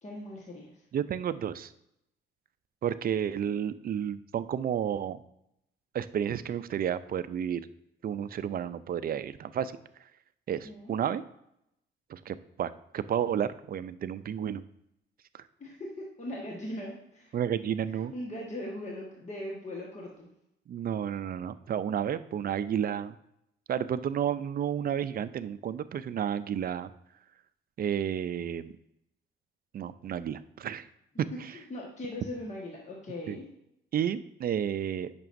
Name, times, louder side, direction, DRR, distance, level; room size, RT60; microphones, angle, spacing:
voice 1, 0.0-0.8 10.6-11.0 15.6-17.4 17.9-20.3 31.5-33.5, left 1 dB, 35° left, -2 dB, 1.4 m, -40 dB
voice 2, 0.9-1.7 2.8-5.2 5.9-7.6 8.0-9.7 10.5-11.2 12.1-14.6 17.3-18.1 20.7-23.1 23.7-26.9 27.8-28.7 29.7-30.9 31.2-31.5 33.3-33.4 33.9-35.1, right 9 dB, 50° right, 14 dB, 0.4 m, -31 dB
8.9 x 6.0 x 2.6 m, 0.80 s
cardioid pair, 90°, 20 cm